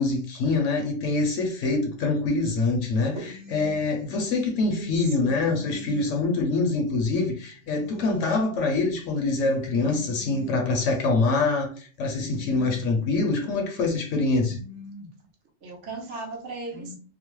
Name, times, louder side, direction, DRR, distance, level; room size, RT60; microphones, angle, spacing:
voice 1, 0.0-14.6, left 3 dB, 75° left, 0.9 m, -25 dB
voice 2, 3.1-3.8 4.6-4.9 5.2-6.0 7.7-8.3 9.4-10.5 12.2-12.8 14.5-15.1 15.6-17.0, right 2 dB, 65° right, 1.1 m, -40 dB
2.9 x 2.0 x 3.0 m
omnidirectional pair, 1.3 m